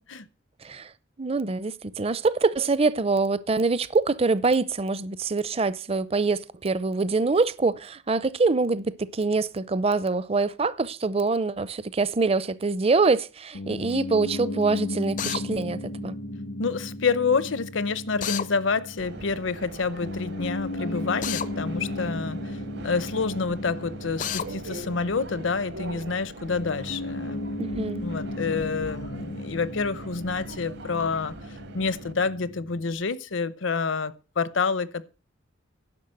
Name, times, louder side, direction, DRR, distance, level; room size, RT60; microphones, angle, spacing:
voice 1, 1.2-16.1 27.6-28.0, right 3 dB, 30° right, 0.5 m, -25 dB
Piano, 13.5-32.9, left 1 dB, 85° left, 1.7 m, -36 dB
Drill, 15.2-15.4 18.2-18.5 21.2-21.5 24.2-24.5, left 9 dB, 40° left, 0.5 m, -29 dB
voice 2, 16.6-22.6 22.8-27.4 28.0-31.4 31.7-35.0, left 4 dB, 70° left, 0.8 m, -28 dB
Subway metro underground, 19.0-32.1, right 2 dB, 55° right, 0.9 m, -42 dB
10.5 x 6.3 x 7.7 m
head